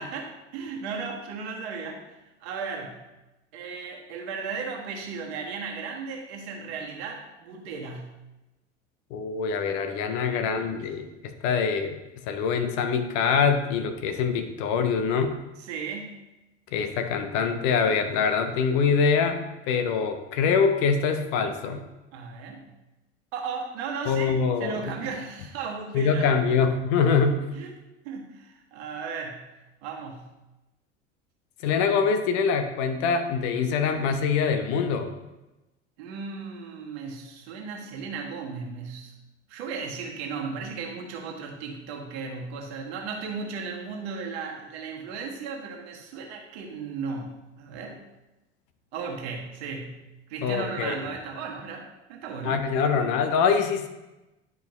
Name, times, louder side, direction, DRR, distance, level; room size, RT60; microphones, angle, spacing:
voice 1, 0.0-3.0 3.5-8.1 10.1-10.7 15.6-16.2 22.1-22.7 23.3-26.6 27.5-27.7 28.0-29.5 29.8-30.3 36.0-39.1 39.5-48.0 48.9-50.0 50.3-53.0, right 5 dB, 60° right, 0 dB, 1.5 m, -36 dB
voice 2, 9.1-12.0 12.3-15.3 16.7-21.8 24.1-24.9 25.9-27.4 31.6-35.1 50.4-50.9 52.4-53.9, left 6 dB, 50° left, 7 dB, 0.9 m, -24 dB
10.5 x 4.9 x 3.1 m, 1.0 s
figure-of-eight pair, 70°, 36 cm